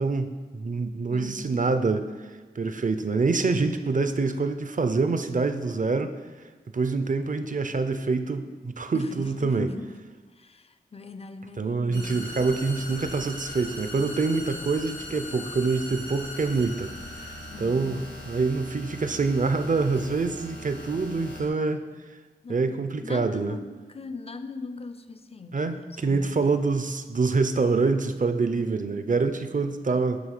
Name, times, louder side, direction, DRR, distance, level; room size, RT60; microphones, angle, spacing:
voice 1, 0.0-2.1 2.6-6.2 6.7-9.7 11.6-16.9 17.2-21.9 22.5-23.6 25.5-30.2, right 4 dB, 45° right, 9 dB, 0.6 m, -26 dB
voice 2, 1.1-1.7 8.9-12.4 17.5-18.1 22.4-26.7, left 4 dB, 35° left, 10 dB, 0.4 m, -41 dB
sound 1, 11.9-21.5, left 1 dB, 85° left, 1.6 m, -40 dB
9.3 x 3.1 x 6.6 m, 1.4 s
wide cardioid pair, 70°, 18 cm